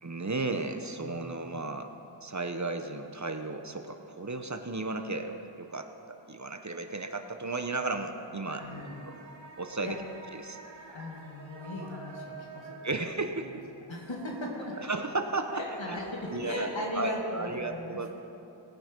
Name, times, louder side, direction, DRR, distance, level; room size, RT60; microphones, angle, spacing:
voice 1, 0.0-1.9 2.2-8.6 9.0-9.1 9.6-10.0 10.3-10.6 12.8-13.6 14.7-15.6 15.9-16.0 16.3-16.7 16.9-18.1, right 3 dB, 40° right, 6 dB, 0.9 m, -34 dB
voice 2, 1.0-1.4 8.6-9.0 9.8-9.9 10.9-13.5 13.9-14.8 15.5-18.1, left 1 dB, 80° left, -2 dB, 2.3 m, -38 dB
sound 1, 8.4-16.4, right 3 dB, 80° right, 2.0 m, -48 dB
19.5 x 9.1 x 5.3 m, 3.0 s
wide cardioid pair, 45°, 45 cm